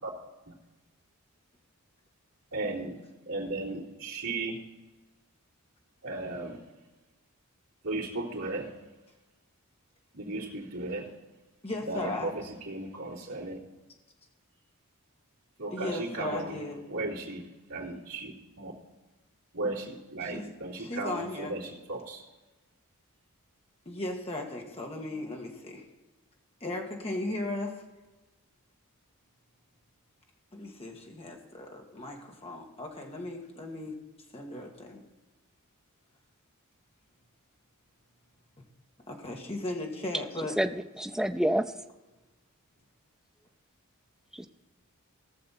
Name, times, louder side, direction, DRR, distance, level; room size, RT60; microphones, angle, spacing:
voice 1, 2.5-3.0 3.2-4.6 6.0-6.6 7.8-8.7 10.1-11.1 11.9-13.6 15.6-16.6 16.9-18.7 19.5-22.2, right 2 dB, 65° right, 3.1 m, -35 dB
voice 2, 11.6-12.3 15.7-16.8 20.3-20.5 20.8-21.5 23.8-25.8 26.6-27.7 30.5-34.0 34.3-35.0 39.1-40.5, left 2 dB, 25° left, 1.7 m, -36 dB
voice 3, 40.6-41.7 44.3-44.5, equal, ahead, 0.4 m, -28 dB
18.5 x 6.7 x 4.2 m
head